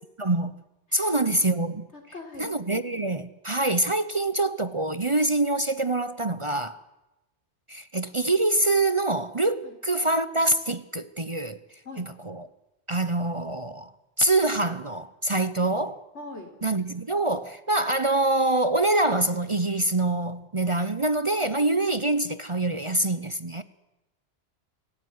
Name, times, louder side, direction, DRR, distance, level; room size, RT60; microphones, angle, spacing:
voice 1, 0.2-0.5 0.9-1.9 2.4-6.8 7.7-11.6 12.0-12.5 12.9-13.9 14.2-16.0 16.6-23.6, right 2 dB, 30° right, 0.9 m, -25 dB
voice 2, 2.1-2.5 9.6-9.7 11.8-12.1 15.6-15.7 16.1-16.5, left 2 dB, 80° left, 4.4 m, -41 dB
26.0 x 17.0 x 9.6 m
omnidirectional pair, 1.2 m